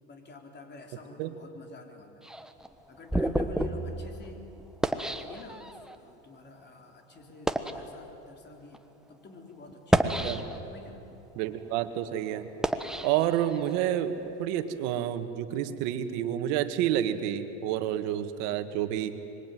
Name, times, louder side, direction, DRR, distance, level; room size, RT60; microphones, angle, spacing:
voice 1, 0.1-2.3 2.9-4.4 4.8-10.3 10.6-11.0, left 3 dB, 30° left, 3 dB, 3.8 m, -49 dB
sound 1, 2.2-6.0 6.6-6.8 7.3-7.8 8.6-8.8 9.7-10.8 11.3-13.8, right 1 dB, ahead, 1.2 m, -31 dB
voice 2, 11.4-12.5 13.0-19.2, right 11 dB, 75° right, 9 dB, 1.9 m, -29 dB
25.5 x 23.0 x 9.4 m, 2.9 s
supercardioid pair, 120°, 35 cm